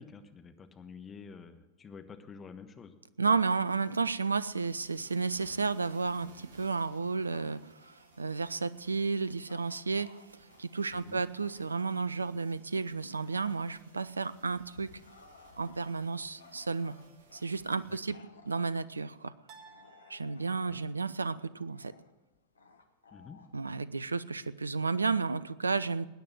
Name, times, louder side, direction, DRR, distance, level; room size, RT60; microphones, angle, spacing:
voice 1, 0.0-2.9 10.9-11.2 17.9-18.2 20.6-20.8 23.1-23.4, left 5 dB, 20° left, 7 dB, 1.3 m, -49 dB
voice 2, 3.2-7.6 7.9-10.1 10.6-14.9 15.6-16.9 17.3-18.2 18.5-19.3 20.1-21.9 23.5-26.1, right 4 dB, 75° right, 17 dB, 0.5 m, -32 dB
sound 1, 3.7-18.0, right 4 dB, 60° right, 1.6 m, -61 dB
Bark / Growling, 5.7-12.3 12.7-24.6, left 4 dB, 75° left, 1.2 m, -60 dB
sound 2, 16.9-17.6 19.5-20.9, right 5 dB, 35° right, 1.4 m, -58 dB
20.0 x 9.4 x 6.1 m, 1.1 s
figure-of-eight pair, 90°, 0 cm